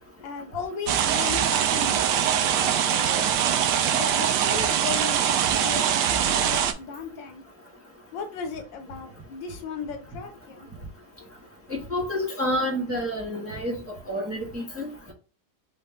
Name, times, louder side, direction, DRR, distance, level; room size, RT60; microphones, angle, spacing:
voice 1, 0.2-3.3 3.9-7.4 8.1-10.7, left 5 dB, 85° left, 1.6 m, -36 dB
sound 1, 0.9-6.7, right 9 dB, 75° right, 1.1 m, -23 dB
voice 2, 11.7-13.7 14.1-15.1, left 1 dB, 10° right, 1.0 m, -29 dB
4.0 x 3.6 x 3.6 m
omnidirectional pair, 2.0 m